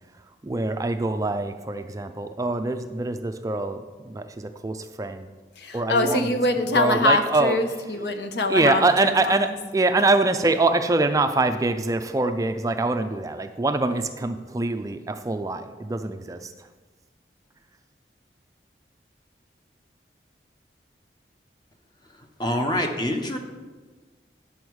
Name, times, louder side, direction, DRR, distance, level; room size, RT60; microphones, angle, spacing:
voice 1, 0.4-3.8 4.1-5.3 5.7-6.2 6.7-7.6 8.5-16.4, right 2 dB, 20° right, 8 dB, 0.3 m, -24 dB
voice 2, 5.6-9.6, left 2 dB, 75° left, 7 dB, 0.8 m, -24 dB
voice 3, 22.4-23.4, left 1 dB, 25° left, 4 dB, 0.9 m, -25 dB
9.4 x 7.0 x 4.7 m, 1.3 s
head